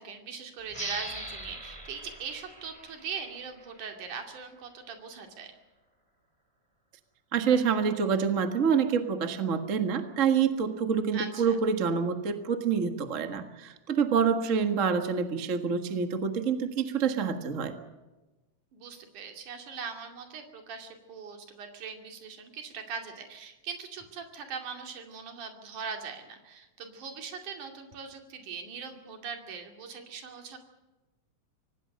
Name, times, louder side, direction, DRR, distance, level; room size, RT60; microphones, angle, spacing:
voice 1, 0.0-5.5 11.1-11.6 18.7-30.6, right 6 dB, 80° right, 4 dB, 4.1 m, -41 dB
sound 1, 0.7-4.0, right 1 dB, 10° right, 2.0 m, -41 dB
voice 2, 7.3-17.7, right 6 dB, 35° right, 7 dB, 1.3 m, -27 dB
25.5 x 18.5 x 6.6 m, 1.1 s
omnidirectional pair, 3.5 m